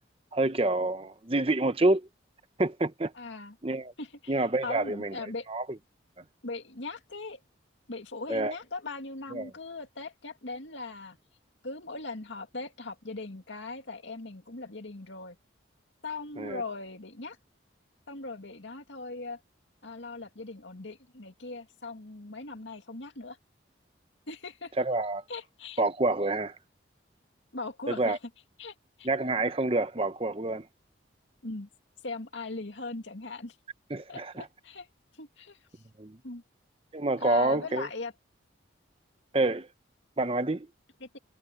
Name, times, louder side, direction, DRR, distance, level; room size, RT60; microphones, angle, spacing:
voice 1, 0.3-2.1 2.6-3.1 3.6-3.9 4.3-5.6 8.3-8.5 9.3-9.5 16.4-16.6 24.8-25.2 25.8-26.6 27.9-28.2 29.0-30.7 33.9-34.5 36.0-36.2 36.9-37.9 39.3-39.7 40.2-40.7, right 2 dB, 30° right, 0.9 m, -27 dB
voice 2, 3.1-3.5 4.0-5.5 6.4-7.4 7.9-11.2 11.6-15.4 16.0-17.4 18.1-19.4 19.8-23.4 24.3-24.7 25.3-25.8 27.5-28.2 28.6-29.1 31.4-31.7 32.0-33.6 34.1-34.9 35.2-35.6 36.2-36.4 37.2-38.1 41.0-41.2, left 3 dB, 70° left, 2.3 m, -39 dB
head